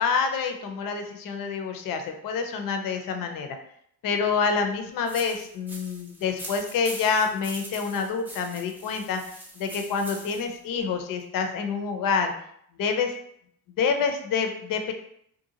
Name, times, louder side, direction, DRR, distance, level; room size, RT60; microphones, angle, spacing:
voice 1, 0.0-3.6 4.0-9.2 9.6-12.3 12.7-13.1 13.8-14.9, left 5 dB, 45° left, 5 dB, 0.6 m, -27 dB
sound 1, 5.1-10.6, right 1 dB, 5° right, 0.5 m, -42 dB
2.6 x 2.4 x 2.7 m, 0.70 s
hypercardioid pair, 45°, 50 cm